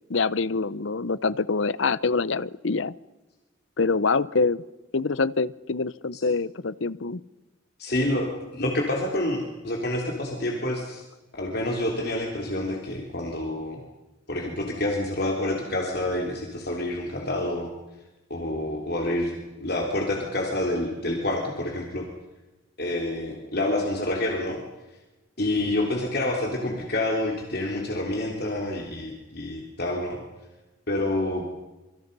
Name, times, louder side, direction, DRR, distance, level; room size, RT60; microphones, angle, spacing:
voice 1, 0.0-2.9 3.8-4.6 4.9-7.2, left 4 dB, 65° left, 19 dB, 0.7 m, -25 dB
voice 2, 7.8-11.0 11.3-13.8 14.3-17.7 18.3-19.3 19.6-22.1 22.8-24.6 25.4-30.2 30.9-31.4, left 1 dB, 50° left, 0 dB, 3.5 m, -28 dB
27.0 x 25.0 x 5.5 m, 1.1 s
head